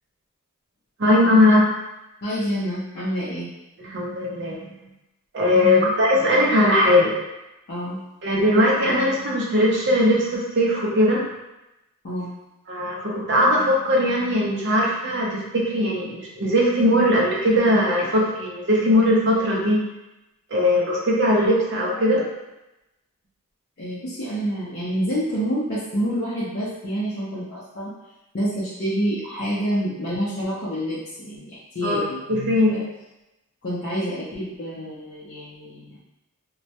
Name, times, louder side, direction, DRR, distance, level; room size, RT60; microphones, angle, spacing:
voice 1, 1.0-1.6 3.8-4.7 5.3-7.1 8.2-11.2 12.7-19.8 20.5-22.2 31.8-32.0 32.3-32.8, left 1 dB, 55° right, -3 dB, 0.5 m, -19 dB
voice 2, 2.2-3.5 5.6-5.9 7.7-8.0 12.0-12.3 23.8-27.9 28.3-32.3 32.7-32.8 33.6-36.0, equal, 50° left, -10 dB, 0.5 m, -28 dB
2.2 x 2.0 x 2.7 m, 0.97 s
head